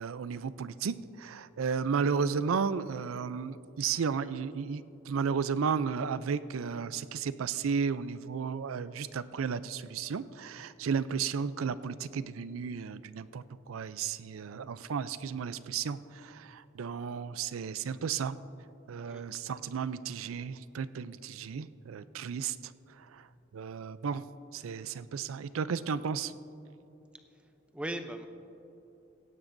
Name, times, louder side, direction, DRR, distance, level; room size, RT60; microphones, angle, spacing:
voice 1, 0.0-18.4 18.9-23.3 23.5-24.2 24.5-26.3, right 6 dB, 85° right, 15 dB, 0.4 m, -34 dB
voice 2, 27.1-28.3, right 1 dB, 5° right, 7 dB, 0.6 m, -40 dB
17.0 x 16.0 x 2.6 m, 2.9 s
head